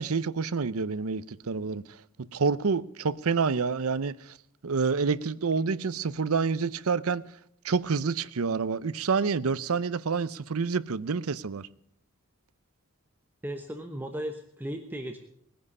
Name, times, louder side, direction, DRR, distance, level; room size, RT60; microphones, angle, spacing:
voice 1, 0.0-1.8 2.3-4.4 4.6-7.2 7.6-11.7, right 5 dB, 80° right, 0.6 m, -28 dB
voice 2, 13.4-15.2, right 1 dB, 10° right, 1.0 m, -36 dB
20.0 x 10.0 x 5.5 m
head